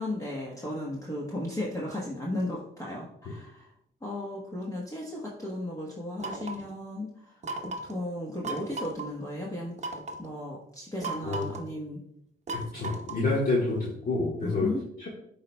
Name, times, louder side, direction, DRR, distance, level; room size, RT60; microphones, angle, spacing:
voice 1, 0.0-3.7 4.0-7.4 7.6-9.7 10.2-12.0 14.4-14.8, left 1 dB, 15° left, -3 dB, 1.1 m, -35 dB
sound 1, 6.2-6.7 7.4-8.0 8.4-9.1 9.8-10.3 11.0-11.7 12.5-13.3, right 2 dB, 35° right, 0.9 m, -36 dB
voice 2, 12.7-14.7 15.0-15.1, left 3 dB, 45° left, -4 dB, 1.5 m, -28 dB
10.5 x 4.2 x 2.2 m, 0.73 s
cardioid pair, 90°, 20 cm